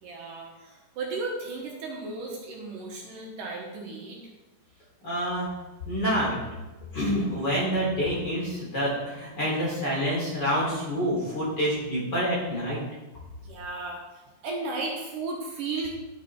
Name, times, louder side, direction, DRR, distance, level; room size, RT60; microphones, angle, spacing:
voice 1, 0.0-4.2 13.4-14.0 14.4-15.9, right 3 dB, 70° right, -1 dB, 2.8 m, -34 dB
voice 2, 5.0-5.5 5.9-6.4 6.9-12.8, equal, 30° left, -7 dB, 3.9 m, -27 dB
11.0 x 5.8 x 4.4 m, 1.1 s
omnidirectional pair, 4.1 m